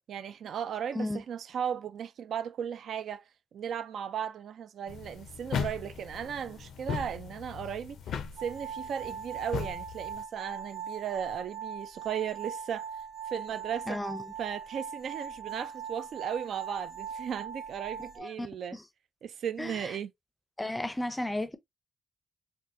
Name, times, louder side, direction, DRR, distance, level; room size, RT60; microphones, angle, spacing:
voice 1, 0.1-3.2 3.5-12.9 13.3-14.0 14.4-18.8 19.2-20.1, right 8 dB, 80° right, 0.3 m, -36 dB
sound 1, 4.9-10.2, left 7 dB, 90° left, 0.5 m, -38 dB
sound 2, 8.4-18.2, right 7 dB, 40° right, 1.3 m, -40 dB
voice 2, 13.9-14.2 18.2-18.8 19.6-19.9 20.6-21.6, left 1 dB, 10° left, 0.5 m, -34 dB
4.2 x 2.1 x 2.6 m
cardioid pair, 105°, 0 cm